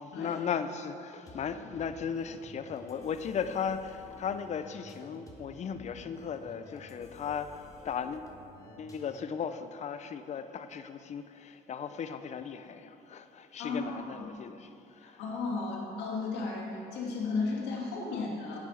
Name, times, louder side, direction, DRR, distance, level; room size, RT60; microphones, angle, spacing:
voice 1, 0.0-8.3 8.8-14.7 15.0-15.2 18.1-18.3, left 7 dB, 40° left, 10 dB, 0.6 m, -36 dB
sound 1, 1.3-9.4, left 1 dB, 20° left, 1.8 m, -52 dB
voice 2, 13.6-14.3 15.0-18.6, left 3 dB, 85° left, -2 dB, 2.5 m, -34 dB
10.5 x 8.9 x 5.7 m, 2.8 s
cardioid pair, 110°, 17 cm